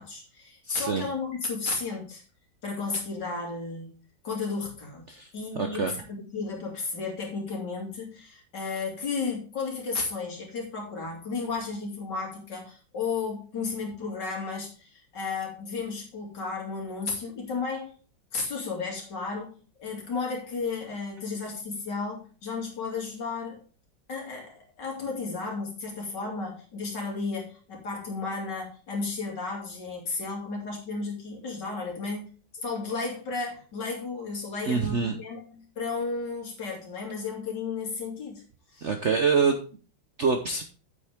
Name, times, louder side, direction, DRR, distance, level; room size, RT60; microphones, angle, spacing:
voice 1, 0.0-2.2 2.6-3.9 4.2-6.0 6.3-17.9 18.3-23.6 24.1-38.4 38.7-38.9, left 4 dB, 65° left, 0 dB, 3.3 m, -33 dB
voice 2, 0.6-1.0 5.1-5.3 5.5-5.9 34.7-35.1 38.8-39.6 40.2-40.6, right 5 dB, 55° right, 5 dB, 0.8 m, -25 dB
8.3 x 8.2 x 3.5 m, 0.38 s
omnidirectional pair, 2.1 m